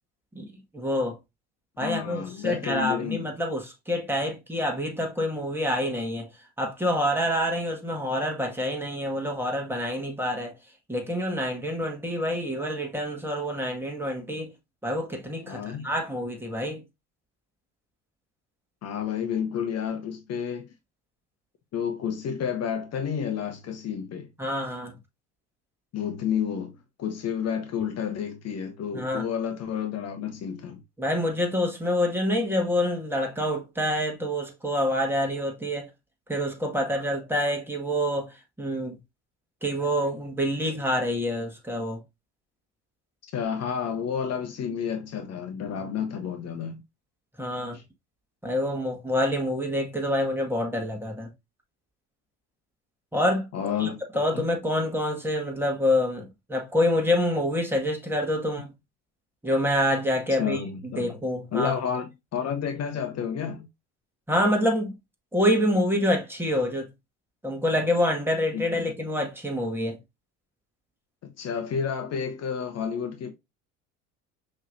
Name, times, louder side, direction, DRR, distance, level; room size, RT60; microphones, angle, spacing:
voice 1, 0.7-1.2 1.8-6.3 6.6-10.5 10.9-14.5 14.8-16.8 24.4-24.9 28.9-29.3 31.0-35.9 36.3-39.0 39.6-42.0 47.4-47.8 48.4-51.3 53.1-53.5 53.8-53.9 54.1-58.7 59.4-61.7 64.3-65.0 65.3-66.9 67.4-70.0, left 1 dB, 5° right, 1.7 m, -27 dB
voice 2, 1.8-3.3 15.4-15.9 18.8-20.7 21.7-24.3 25.9-30.8 43.3-46.8 47.7-47.8 53.5-54.0 60.4-61.1 61.5-63.7 68.5-68.9 71.2-73.3, left 7 dB, 45° left, 0.9 m, -30 dB
5.5 x 3.2 x 2.6 m
supercardioid pair, 80°, 34 cm